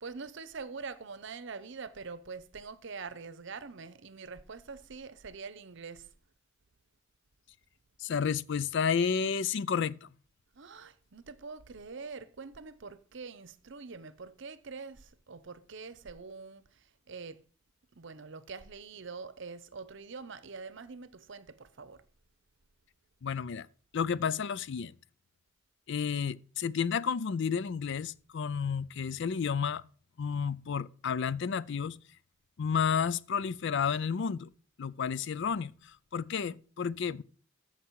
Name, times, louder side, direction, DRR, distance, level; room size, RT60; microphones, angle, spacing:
voice 1, 0.0-6.1 10.5-17.4 17.9-22.0, right 4 dB, 65° right, 0.8 m, -44 dB
voice 2, 8.0-10.1 23.2-23.7 23.9-24.9 25.9-29.8 30.2-32.0 32.6-34.5 34.8-37.2, left 6 dB, 60° left, 0.4 m, -31 dB
14.0 x 5.9 x 4.7 m
head